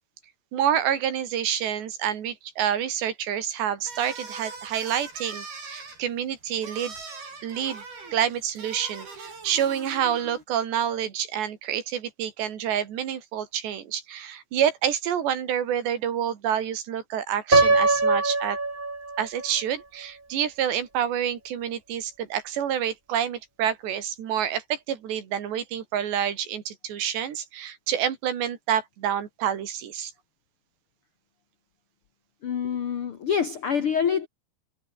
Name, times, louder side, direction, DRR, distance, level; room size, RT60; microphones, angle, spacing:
voice 1, 0.5-6.9 7.4-7.8 8.1-18.6 19.2-30.1, right 9 dB, 85° right, 5.0 m, -28 dB
sound 1, 3.8-10.4, right 4 dB, 65° right, 9.7 m, -41 dB
Piano, 17.5-19.5, right 3 dB, 20° right, 1.4 m, -21 dB
voice 2, 32.4-34.3, left 7 dB, 80° left, 1.2 m, -26 dB
omnidirectional pair, 4.8 m